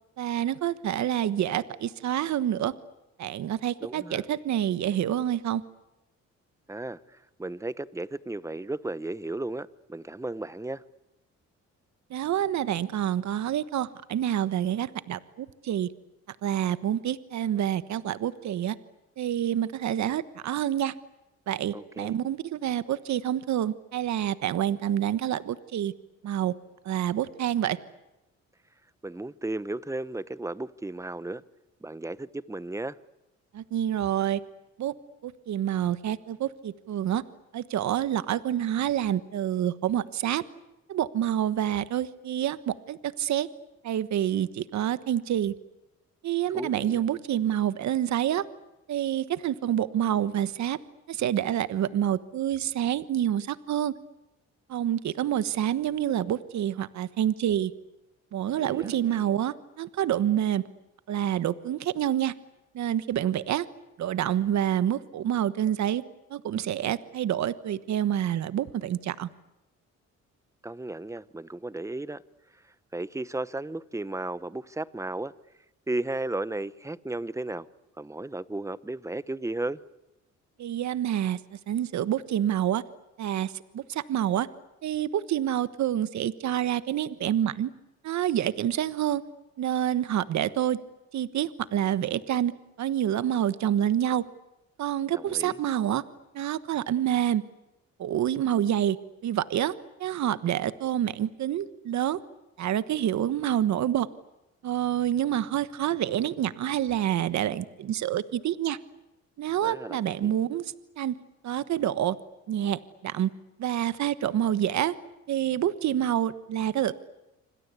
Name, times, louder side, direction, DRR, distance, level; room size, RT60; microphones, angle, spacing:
voice 1, 0.2-2.7 3.2-5.6 12.1-15.9 16.4-18.8 19.2-20.9 21.5-25.9 26.2-26.5 26.8-27.8 33.5-34.4 34.8-34.9 35.2-37.2 37.5-40.4 40.9-43.5 43.8-45.5 46.2-48.4 48.9-50.8 51.1-53.9 54.7-57.7 58.3-60.6 61.1-62.3 62.7-63.7 64.0-66.0 66.3-69.3 80.6-81.4 81.7-82.8 83.2-84.5 84.8-87.7 88.0-89.2 89.6-90.8 91.1-92.5 92.8-94.2 94.8-96.0 96.3-97.4 98.0-99.0 99.2-99.7 100.0-102.2 102.6-104.1 104.6-108.8 109.4-111.2 111.4-112.2 112.5-113.3 113.6-114.9 115.3-116.9, right 11 dB, 65° right, 1.3 m, -27 dB
voice 2, 3.8-4.2 6.7-10.8 21.7-22.1 29.0-31.4 31.8-33.0 46.5-47.0 58.6-59.3 70.6-72.2 72.9-75.3 75.9-77.7 78.0-79.8 95.1-95.6 109.6-110.3, right 2 dB, 10° right, 1.0 m, -34 dB
27.5 x 26.0 x 8.3 m
cardioid pair, 90°, 30 cm